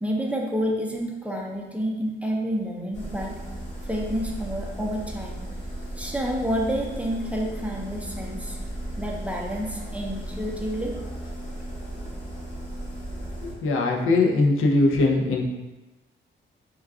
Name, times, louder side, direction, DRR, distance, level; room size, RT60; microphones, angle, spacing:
voice 1, 0.0-3.4 3.8-5.4 5.9-8.6 9.0-10.9, equal, 5° right, -1 dB, 0.5 m, -29 dB
sound 1, 2.9-13.5, right 1 dB, 35° left, 1.1 m, -35 dB
voice 2, 13.6-15.4, left 2 dB, 75° left, 0 dB, 0.6 m, -20 dB
4.4 x 2.3 x 2.3 m, 1.1 s
cardioid pair, 90°, 21 cm